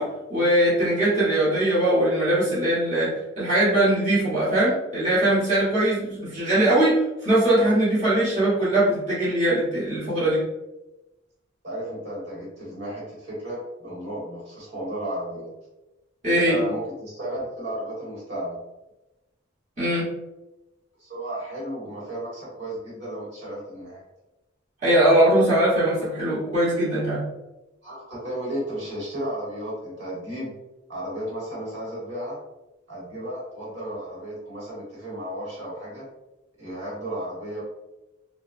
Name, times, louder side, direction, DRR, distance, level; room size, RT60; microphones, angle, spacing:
voice 1, 0.0-10.4 16.2-16.6 19.8-20.1 24.8-27.2, right 1 dB, 35° right, -10 dB, 1.3 m, -21 dB
voice 2, 11.6-15.5 16.3-18.6 21.0-24.0 27.8-30.5 30.9-32.4 32.9-36.0 36.6-37.6, right 1 dB, 60° right, -6 dB, 1.3 m, -33 dB
3.9 x 2.2 x 2.5 m, 0.99 s
head